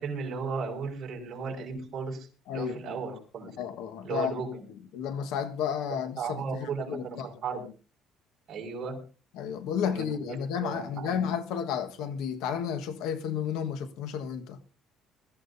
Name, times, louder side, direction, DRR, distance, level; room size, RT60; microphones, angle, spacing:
voice 1, 0.0-3.6 4.0-4.7 5.9-7.7 8.5-9.0 9.8-11.2, right 5 dB, 40° right, 5.5 m, -36 dB
voice 2, 2.5-3.0 3.6-4.4 4.9-7.3 9.4-14.6, left 8 dB, 85° left, 1.5 m, -32 dB
21.0 x 14.5 x 2.7 m
cardioid pair, 160°, 0 cm